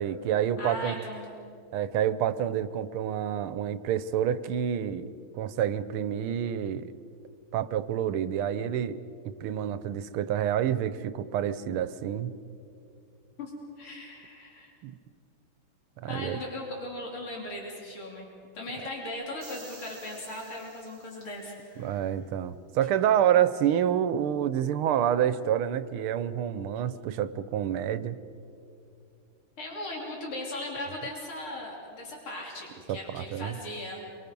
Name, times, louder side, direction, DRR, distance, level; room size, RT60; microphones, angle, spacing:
voice 1, 0.0-1.0 1.7-5.1 5.3-6.9 7.5-9.0 9.2-12.3 14.8-14.9 16.0-16.4 21.8-28.2 32.9-33.6, right 10 dB, 85° right, 14 dB, 1.6 m, -28 dB
voice 2, 0.6-1.3 13.4-13.5 13.8-14.7 16.1-18.3 18.5-22.1 29.6-34.0, left 1 dB, 85° left, -2 dB, 4.1 m, -38 dB
sound 1, 19.4-21.7, right 3 dB, 35° right, 3.3 m, -51 dB
27.5 x 24.0 x 5.3 m, 2.6 s
omnidirectional pair, 2.3 m